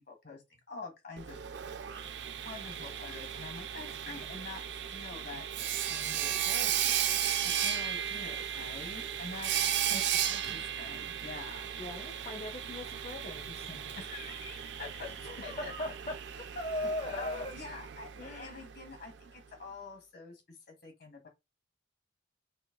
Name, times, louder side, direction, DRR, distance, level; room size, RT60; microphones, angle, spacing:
voice 1, 0.1-1.4 2.4-5.5 5.9-6.9 7.6-10.0 10.3-11.7 14.0-15.7 16.8-20.4 20.7-21.3, left 3 dB, 55° left, 1.7 m, -46 dB
Sawing, 1.2-19.0, right 9 dB, 65° right, 0.4 m, -35 dB
voice 2, 6.1-6.4 9.9-10.7 11.8-14.0 15.1-16.1 16.5-17.5 18.2-18.7, left 1 dB, 35° left, 0.6 m, -40 dB
5.2 x 3.3 x 2.2 m
head